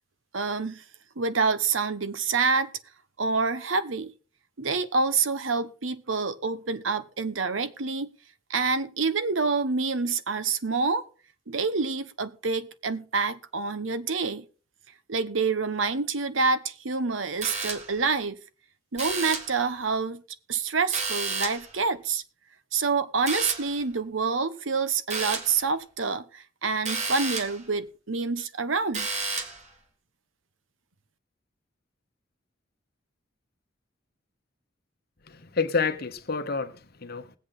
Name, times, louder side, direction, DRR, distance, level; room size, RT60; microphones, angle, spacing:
voice 1, 0.3-0.8 1.2-2.7 3.2-4.1 4.6-8.1 8.5-11.0 11.5-14.4 15.1-18.4 18.9-20.2 20.5-22.2 22.7-29.1, right 4 dB, 80° right, 1.1 m, -27 dB
sound 1, 17.4-18.1 19.0-19.6 20.9-21.8 23.3-23.8 25.1-25.6 26.9-27.7 28.9-29.7, right 4 dB, 35° right, 1.8 m, -31 dB
voice 2, 35.3-37.3, left 4 dB, 55° left, 1.1 m, -29 dB
20.0 x 8.3 x 3.9 m
head